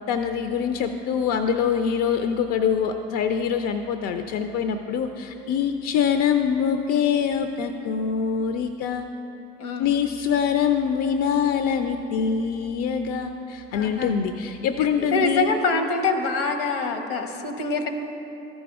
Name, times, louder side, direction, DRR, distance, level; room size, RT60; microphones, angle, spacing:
voice 1, 0.1-9.1 9.8-15.5, left 7 dB, 55° left, 8 dB, 0.5 m, -24 dB
voice 2, 9.6-10.0 13.7-14.1 15.0-17.9, left 3 dB, 75° left, 6 dB, 0.9 m, -25 dB
13.5 x 5.2 x 3.6 m, 2.9 s
hypercardioid pair, 55°, 30 cm